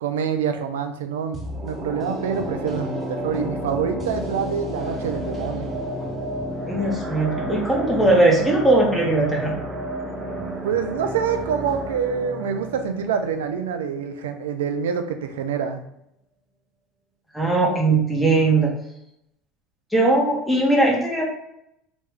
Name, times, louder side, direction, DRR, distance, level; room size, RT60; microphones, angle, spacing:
voice 1, 0.0-5.7 10.6-15.8, right 7 dB, 90° right, 7 dB, 0.5 m, -26 dB
sound 1, 1.3-14.4 14.7-14.8, right 1 dB, 30° right, 0.9 m, -31 dB
voice 2, 6.7-9.6 17.3-18.7 19.9-21.3, right 2 dB, ahead, -3 dB, 1.5 m, -19 dB
3.2 x 3.1 x 3.5 m, 0.80 s
supercardioid pair, 90°, 0 cm